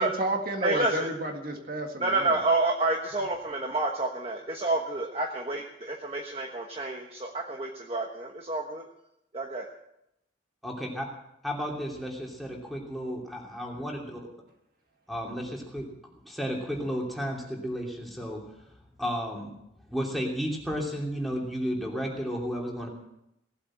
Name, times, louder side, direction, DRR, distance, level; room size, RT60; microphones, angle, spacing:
voice 1, 0.0-2.4, right 1 dB, 50° right, 3 dB, 1.9 m, -31 dB
voice 2, 0.6-1.1 2.0-8.9 9.3-9.7, right 2 dB, 30° right, 1 dB, 1.2 m, -29 dB
voice 3, 10.6-11.1 11.4-14.2 15.1-15.9 16.3-18.6 19.0-19.6 19.9-22.9, equal, ahead, -2 dB, 2.9 m, -33 dB
18.0 x 8.6 x 7.7 m, 0.83 s
head